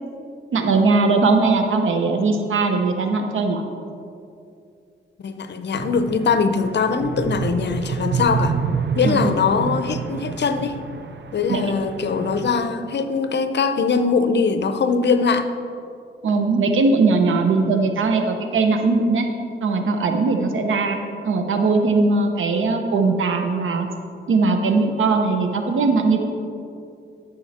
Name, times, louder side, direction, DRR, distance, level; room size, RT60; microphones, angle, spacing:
voice 1, 0.5-3.6 9.0-9.3 11.5-11.7 16.2-19.3 19.6-21.0 21.2-23.9 24.3-26.2, right 3 dB, 90° right, 5 dB, 1.0 m, -19 dB
voice 2, 5.2-8.6 9.0-10.8 11.3-15.5 20.4-20.5, left 5 dB, 60° left, 10 dB, 0.7 m, -21 dB
sound 1, 5.7-12.6, right 5 dB, 65° right, 0.7 m, -28 dB
12.5 x 6.5 x 4.3 m, 2.5 s
cardioid pair, 75°, 20 cm